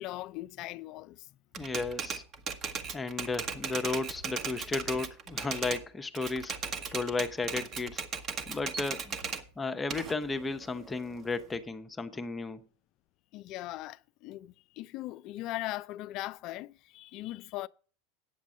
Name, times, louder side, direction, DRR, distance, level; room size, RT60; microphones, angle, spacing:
voice 1, 0.0-1.3 5.5-5.6 6.9-7.0 13.3-17.7, left 16 dB, 50° left, 0.4 m, -40 dB
Typewriter, 1.5-5.8 6.2-9.4 9.9-11.6, right 5 dB, 35° right, 1.2 m, -37 dB
voice 2, 1.6-2.2 2.9-6.5 6.9-8.0 8.5-9.2 9.6-12.6, left 3 dB, 15° left, 0.9 m, -34 dB
9.2 x 7.3 x 7.3 m
hypercardioid pair, 90°, 0 cm